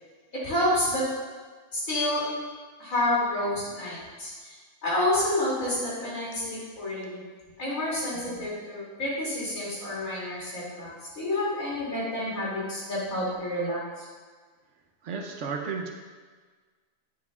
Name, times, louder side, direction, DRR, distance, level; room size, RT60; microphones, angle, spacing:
voice 1, 0.4-1.0 1.7-2.2 2.8-4.6 4.8-7.2 7.6-10.9 11.1-14.0, left 1 dB, 80° left, -7 dB, 3.1 m, -29 dB
voice 2, 15.0-15.9, right 5 dB, 65° right, 3 dB, 1.0 m, -33 dB
9.3 x 7.3 x 2.4 m, 1.5 s
omnidirectional pair, 1.4 m